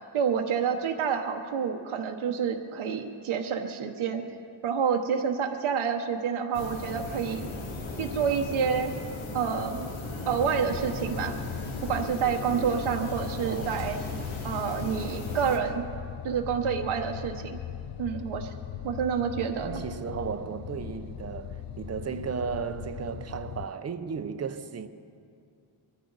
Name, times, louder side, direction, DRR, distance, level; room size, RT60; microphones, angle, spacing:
voice 1, 0.1-4.2 4.6-7.5 8.0-8.9 9.3-9.9 10.3-11.3 11.8-14.0 14.4-15.8 16.2-17.6 18.0-18.5 18.8-19.8, right 7 dB, 80° right, 1.0 m, -28 dB
sound 1, 6.5-15.6, left 2 dB, 75° left, 1.7 m, -36 dB
sound 2, 10.3-23.7, left 9 dB, 50° left, 0.5 m, -40 dB
voice 2, 13.4-13.8 19.6-24.9, right 6 dB, 35° right, 0.6 m, -35 dB
22.5 x 14.0 x 4.0 m
wide cardioid pair, 160°, 48 cm